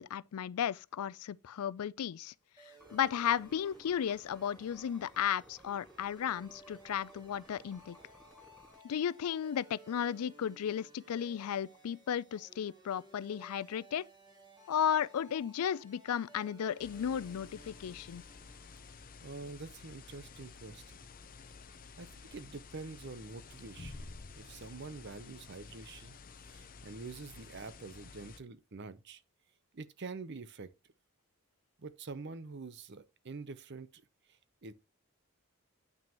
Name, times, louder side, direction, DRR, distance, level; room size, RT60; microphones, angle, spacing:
voice 1, 0.0-2.3 2.9-8.0 8.8-14.0 14.7-18.2, left 9 dB, 80° left, 0.4 m, -34 dB
sound 1, 2.6-19.0, right 1 dB, 20° right, 2.2 m, -58 dB
sound 2, 2.8-8.8, equal, ahead, 0.6 m, -60 dB
sound 3, 16.8-28.4, left 4 dB, 40° left, 0.7 m, -52 dB
voice 2, 19.2-21.0 22.0-24.1 24.3-26.1 26.4-29.2 29.7-30.7 31.8-34.0 34.3-34.7, right 3 dB, 50° right, 0.7 m, -46 dB
9.2 x 6.0 x 2.9 m
head